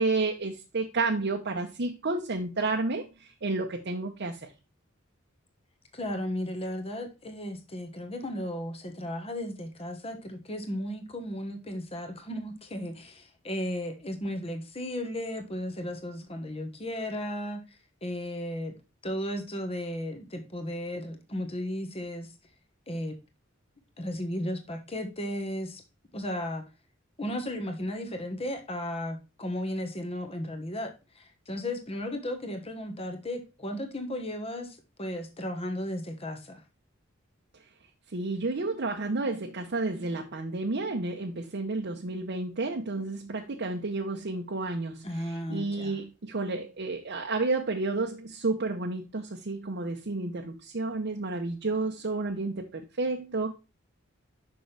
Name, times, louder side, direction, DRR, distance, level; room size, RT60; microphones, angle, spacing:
voice 1, 0.0-4.5 38.1-53.5, right 3 dB, 55° right, 0.8 m, -31 dB
voice 2, 5.9-17.6 18.0-18.7 19.0-22.3 22.9-23.2 24.0-25.8 26.1-26.6 27.2-36.6 45.0-46.0, left 1 dB, 30° left, 1.3 m, -35 dB
6.4 x 5.8 x 3.3 m
head